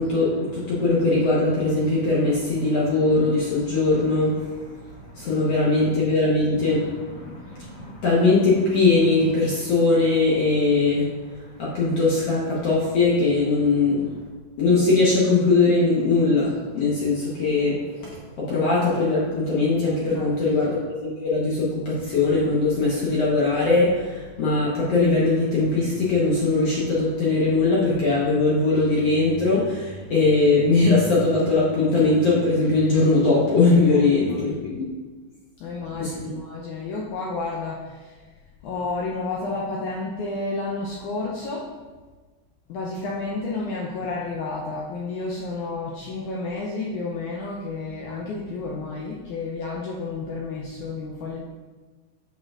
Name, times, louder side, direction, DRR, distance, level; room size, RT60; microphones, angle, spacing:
voice 1, 0.0-11.1 11.6-14.0 14.6-34.8 35.9-36.3, left 3 dB, 65° left, -6 dB, 1.6 m, -21 dB
voice 2, 35.6-38.2 38.6-41.7 42.7-51.4, left 3 dB, 80° left, -2 dB, 1.7 m, -31 dB
8.3 x 6.6 x 2.4 m, 1.3 s
omnidirectional pair, 4.2 m